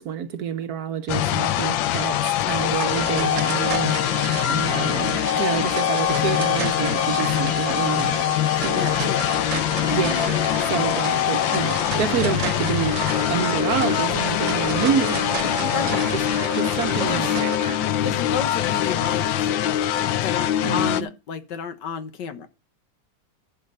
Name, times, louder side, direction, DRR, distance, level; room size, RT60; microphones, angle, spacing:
voice 1, 0.0-8.3 8.6-8.9 9.5-9.6 9.9-16.0 16.5-17.9 20.6-21.1, right 8 dB, 60° right, 1.1 m, -28 dB
sound 1, 1.1-21.0, left 12 dB, 90° left, 1.4 m, -23 dB
sound 2, 2.8-17.6, right 9 dB, 80° right, 1.6 m, -33 dB
voice 2, 8.7-9.4 9.7-10.1 15.7-16.1 17.0-17.3 18.0-19.8 20.2-22.5, left 7 dB, 70° left, 1.6 m, -31 dB
11.0 x 6.6 x 5.4 m
omnidirectional pair, 2.0 m